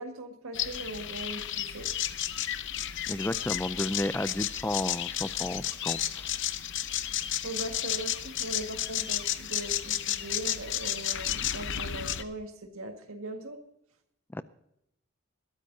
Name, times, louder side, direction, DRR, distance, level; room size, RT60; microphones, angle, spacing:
voice 1, 0.0-1.9 7.4-13.6, right 1 dB, 75° right, 5 dB, 1.9 m, -40 dB
sound 1, 0.5-12.2, left 11 dB, 60° left, 0.7 m, -32 dB
voice 2, 3.1-6.3 14.3-14.4, left 1 dB, 10° left, 14 dB, 0.4 m, -32 dB
21.5 x 13.0 x 2.8 m, 0.77 s
head